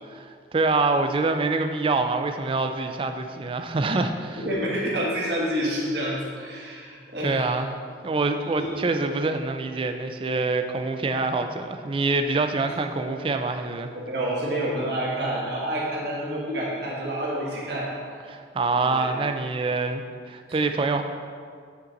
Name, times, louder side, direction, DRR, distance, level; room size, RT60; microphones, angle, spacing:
voice 1, 0.1-4.4 7.2-7.7 8.0-13.9 18.3-21.0, right 3 dB, 30° right, 7 dB, 0.3 m, -25 dB
voice 2, 4.4-7.6 8.6-8.7 12.9-13.0 13.8-18.2 18.8-19.1 20.5-20.6, right 1 dB, 65° right, -5 dB, 1.4 m, -29 dB
8.5 x 3.8 x 4.0 m, 2.1 s
head